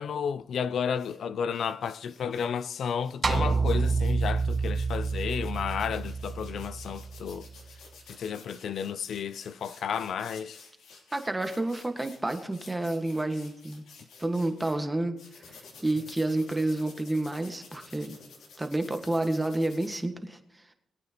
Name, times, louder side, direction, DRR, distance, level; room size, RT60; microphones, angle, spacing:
voice 1, 0.0-7.5 8.1-10.6, left 7 dB, 65° left, 0.6 m, -32 dB
sound 1, 0.9-1.2 1.5-14.8 15.2-20.0, left 4 dB, 85° left, 3.3 m, -52 dB
sound 2, 3.2-7.6, right 4 dB, 30° right, 0.6 m, -28 dB
voice 2, 11.1-13.9 14.2-15.2 15.5-15.6 15.8-18.2 18.6-20.6, right 2 dB, 15° right, 1.6 m, -29 dB
22.5 x 8.7 x 3.0 m
cardioid pair, 100°, 0 cm